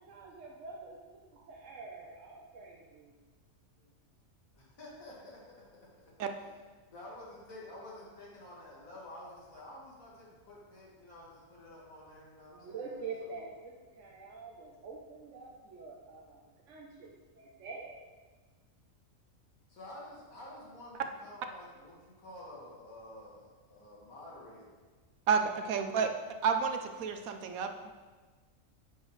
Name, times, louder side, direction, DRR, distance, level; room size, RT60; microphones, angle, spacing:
voice 1, 0.0-3.2 12.5-18.0 25.6-25.7, right 4 dB, 65° right, -2 dB, 1.1 m, -46 dB
voice 2, 4.5-5.4 6.9-13.5 19.7-24.9, left 1 dB, 85° left, -5 dB, 2.3 m, -50 dB
voice 3, 25.3-26.1 26.4-27.9, right 6 dB, 90° right, 7 dB, 1.1 m, -30 dB
9.4 x 7.3 x 3.2 m, 1.4 s
omnidirectional pair, 1.4 m